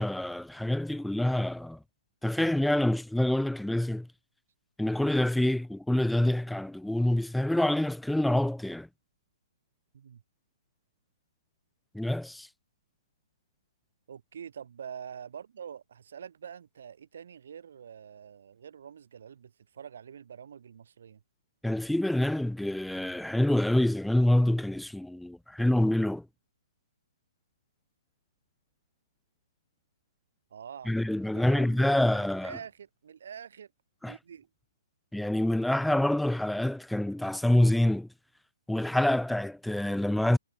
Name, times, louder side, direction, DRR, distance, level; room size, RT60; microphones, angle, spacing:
voice 1, 0.0-1.8 2.2-4.1 4.8-8.9 11.9-12.5 21.6-26.2 30.9-32.5 34.0-34.1 35.1-38.1 38.7-40.4, left 1 dB, ahead, 0.3 m, -26 dB
voice 2, 14.1-21.2 30.5-33.7 34.0-34.5, right 8 dB, 65° right, 3.3 m, -46 dB
hypercardioid pair, 140°, 0 cm